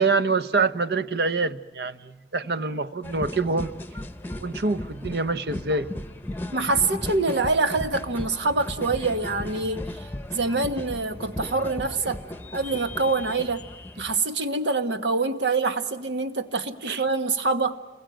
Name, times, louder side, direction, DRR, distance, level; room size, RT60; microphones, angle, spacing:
voice 1, 0.0-3.7 4.4-5.9 16.8-17.0, right 3 dB, 60° right, 13 dB, 0.9 m, -25 dB
sound 1, 3.0-14.2, left 1 dB, 10° left, 0.9 m, -36 dB
voice 2, 6.5-9.8 10.3-12.2 12.5-13.6 14.0-17.8, right 3 dB, 80° right, 9 dB, 1.5 m, -25 dB
28.0 x 21.5 x 9.0 m, 1.2 s
head